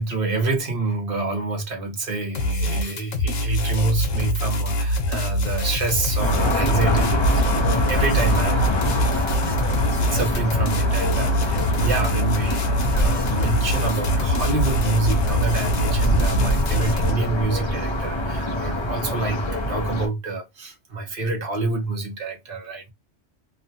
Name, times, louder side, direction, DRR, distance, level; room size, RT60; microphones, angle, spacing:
voice 1, 0.0-9.0 9.4-9.6 10.1-22.9, right 3 dB, 50° right, 0.9 m, -27 dB
sound 1, 2.3-17.1, equal, 90° left, 1.1 m, -24 dB
sound 2, 6.2-20.1, equal, 30° left, 0.7 m, -24 dB
3.0 x 2.1 x 2.7 m
omnidirectional pair, 1.3 m